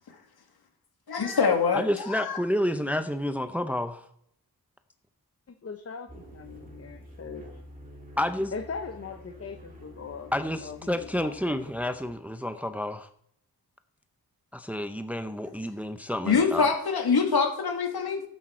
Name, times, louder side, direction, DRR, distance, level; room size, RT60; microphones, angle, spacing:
voice 1, 1.1-2.4 16.2-18.2, left 5 dB, 75° left, 4 dB, 2.3 m, -24 dB
voice 2, 1.7-4.0 8.2-8.5 10.3-13.1 14.5-16.7, left 1 dB, 5° right, 9 dB, 0.6 m, -30 dB
voice 3, 5.6-7.4 8.5-10.3 10.6-11.3, left 5 dB, 40° left, 7 dB, 0.9 m, -39 dB
sound 1, 6.1-12.1, equal, 20° right, 2.7 m, -48 dB
13.0 x 8.8 x 4.5 m, 0.68 s
wide cardioid pair, 125°, 38 cm